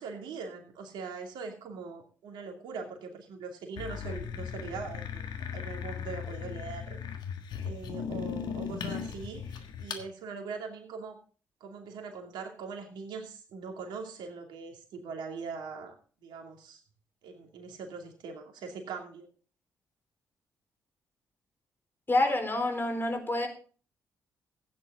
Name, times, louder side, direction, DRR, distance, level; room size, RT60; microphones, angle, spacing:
voice 1, 0.0-5.2 5.5-7.0 7.6-11.2 11.6-15.9 16.2-16.8 17.2-19.3, right 5 dB, 70° right, 3 dB, 2.6 m, -41 dB
sound 1, 3.8-10.1, left 7 dB, 65° left, 1.5 m, -37 dB
voice 2, 22.1-23.5, left 2 dB, 25° left, 5 dB, 4.3 m, -27 dB
15.5 x 9.4 x 3.8 m, 0.40 s
hypercardioid pair, 45°, 8 cm